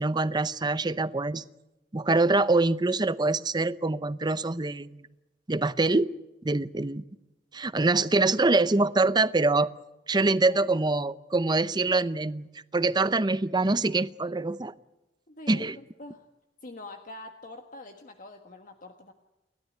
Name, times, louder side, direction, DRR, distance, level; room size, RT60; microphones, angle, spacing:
voice 1, 0.0-1.4 1.9-5.0 5.5-6.1 6.4-7.0 7.5-9.7 10.1-14.7 15.5-15.8, right 3 dB, 25° right, 15 dB, 0.7 m, -25 dB
voice 2, 15.3-16.3 16.6-19.1, left 2 dB, 50° left, 5 dB, 1.6 m, -45 dB
29.5 x 13.0 x 9.4 m, 1.0 s
head